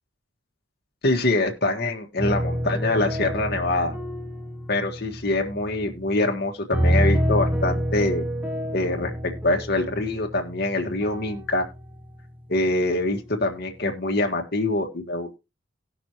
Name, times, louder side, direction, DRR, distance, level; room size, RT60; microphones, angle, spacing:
voice 1, 1.0-3.9 4.7-8.2 8.7-11.6 12.5-15.4, left 2 dB, 55° left, 3 dB, 1.5 m, -24 dB
sound 1, 2.2-6.3 6.7-12.2 12.7-13.1, equal, 10° right, 0.9 m, -28 dB
18.0 x 6.1 x 3.0 m, 0.26 s
head